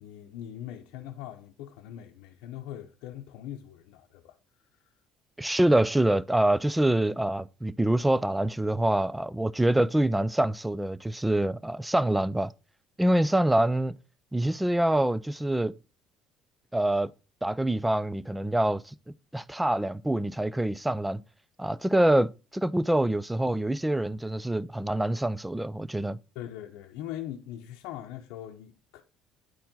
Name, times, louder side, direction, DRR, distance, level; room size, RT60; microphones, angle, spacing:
voice 1, 0.0-4.4 4.8-4.9 26.3-29.0, left 11 dB, 80° left, 0.7 m, -41 dB
voice 2, 5.4-12.5 13.0-14.0 14.3-15.8 16.7-17.1 17.4-18.9 19.3-21.2 21.6-26.2, right 1 dB, 10° right, 0.5 m, -25 dB
9.5 x 4.4 x 3.7 m
supercardioid pair, 85°, 0 cm